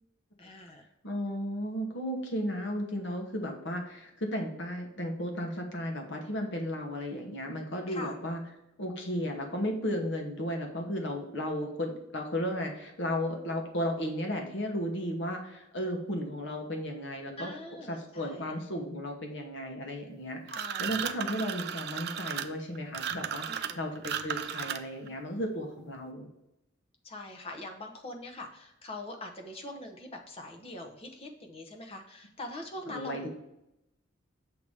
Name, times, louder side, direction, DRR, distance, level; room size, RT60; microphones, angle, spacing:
voice 1, 0.4-0.8 7.9-8.2 17.4-18.5 20.5-21.1 23.5-23.9 27.0-33.3, left 1 dB, 30° left, 3 dB, 0.8 m, -43 dB
voice 2, 1.0-8.4 8.8-17.5 17.9-20.5 20.8-26.3 32.9-33.3, equal, 60° left, 2 dB, 1.1 m, -34 dB
sound 1, 20.5-25.1, right 8 dB, 50° right, 0.4 m, -35 dB
7.1 x 2.9 x 4.8 m, 0.86 s
head